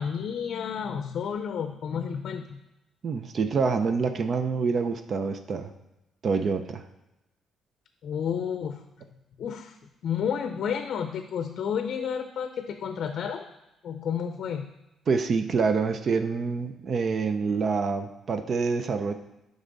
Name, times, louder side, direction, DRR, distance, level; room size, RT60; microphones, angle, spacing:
voice 1, 0.0-2.6 8.0-8.8 9.4-9.8 10.0-13.5 13.8-14.7, left 7 dB, 65° left, 8 dB, 0.5 m, -31 dB
voice 2, 3.0-5.7 6.2-6.8 15.1-19.1, right 5 dB, 50° right, 8 dB, 0.5 m, -26 dB
8.0 x 5.3 x 4.0 m, 0.93 s
cardioid pair, 90°, 0 cm